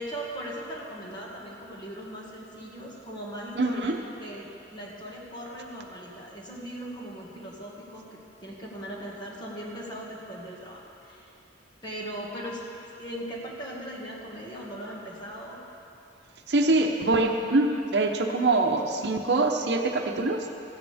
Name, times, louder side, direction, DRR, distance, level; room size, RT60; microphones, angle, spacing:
voice 1, 0.0-11.3 11.8-15.6, equal, 25° left, -4 dB, 1.9 m, -39 dB
voice 2, 3.6-4.0 16.5-20.5, right 2 dB, 65° right, 3 dB, 0.9 m, -24 dB
16.5 x 15.0 x 3.5 m, 2.8 s
head